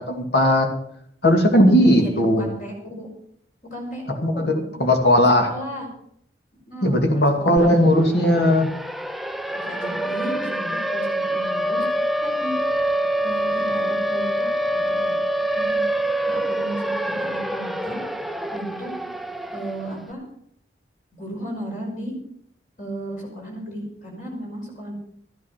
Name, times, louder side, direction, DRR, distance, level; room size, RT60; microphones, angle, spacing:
voice 1, 0.1-0.7 1.2-2.5 4.2-5.5 6.8-8.7, left 1 dB, 65° left, 3 dB, 2.5 m, -17 dB
voice 2, 1.7-3.1 3.6-4.5 5.1-5.9 6.7-7.7 8.1-8.3 9.4-11.8 12.2-12.5 13.2-14.5 14.7-15.1 15.6-15.8 16.3-18.0 18.5-18.9 19.5-20.2 21.1-22.1 22.8-24.9, right 1 dB, 45° left, -1 dB, 5.3 m, -34 dB
Siren, 7.6-7.7 8.0-20.0, right 1 dB, ahead, 0.4 m, -25 dB
13.5 x 10.5 x 5.9 m, 0.68 s
head